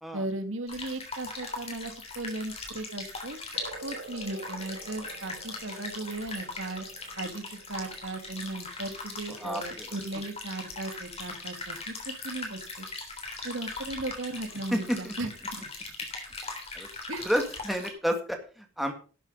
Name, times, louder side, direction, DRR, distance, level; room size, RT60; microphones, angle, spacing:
voice 1, 0.1-3.4 3.8-6.8 7.2-12.9 13.4-15.6 17.1-17.3, right 2 dB, 85° right, 7 dB, 2.0 m, -37 dB
sound 1, 0.7-17.9, left 3 dB, 30° left, 3.4 m, -40 dB
sound 2, 3.5-10.5, right 3 dB, 60° right, 2.7 m, -49 dB
voice 2, 9.3-10.0 14.7-15.1 16.8-16.9 17.2-18.9, equal, ahead, 3 dB, 1.9 m, -30 dB
12.5 x 8.0 x 5.4 m, 0.37 s
head